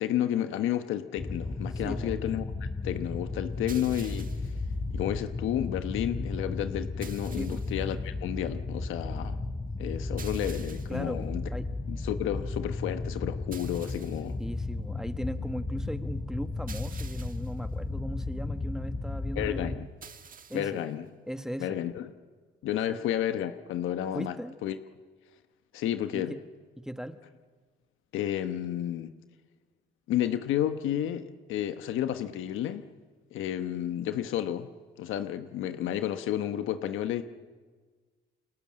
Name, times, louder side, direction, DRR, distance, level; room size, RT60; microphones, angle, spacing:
voice 1, 0.0-2.5 2.8-4.6 4.9-9.4 9.8-11.4 11.9-14.4 19.3-19.9 20.5-21.0 21.6-22.1 22.6-24.3 24.6-24.8 25.7-26.3 28.1-29.1 30.1-32.8 33.3-34.7 35.0-37.2, left 11 dB, 90° left, 9 dB, 1.2 m, -31 dB
sound 1, 1.2-19.8, left 3 dB, 30° left, 3.4 m, -34 dB
voice 2, 1.7-2.2 7.4-7.7 10.9-11.7 14.4-19.8 20.5-20.8 21.3-21.8 22.9-23.0 24.1-24.5 26.1-26.4 26.8-27.2, equal, 5° right, 8 dB, 1.5 m, -38 dB
sound 2, 3.7-4.6 7.0-7.8 10.2-11.1 13.5-14.3 16.7-17.6 20.0-20.8, right 6 dB, 45° right, 1.5 m, -48 dB
29.0 x 24.0 x 7.6 m, 1.5 s
cardioid pair, 90°, 20 cm